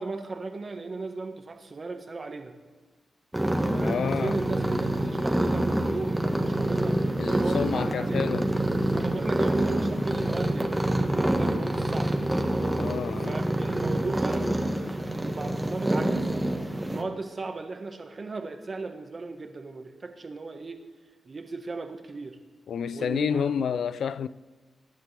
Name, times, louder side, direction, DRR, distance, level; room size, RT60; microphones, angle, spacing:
voice 1, 0.0-2.5 3.6-8.4 8.9-12.2 13.2-16.3 16.6-20.8 21.2-22.4 22.9-23.6, right 3 dB, 40° right, 1.4 m, -36 dB
sound 1, 3.3-17.0, right 1 dB, 10° right, 1.4 m, -27 dB
voice 2, 3.8-4.4 7.2-8.5 12.7-13.4 22.7-24.3, left 7 dB, 80° left, 0.4 m, -29 dB
22.5 x 10.0 x 3.4 m
cardioid pair, 80°, 0 cm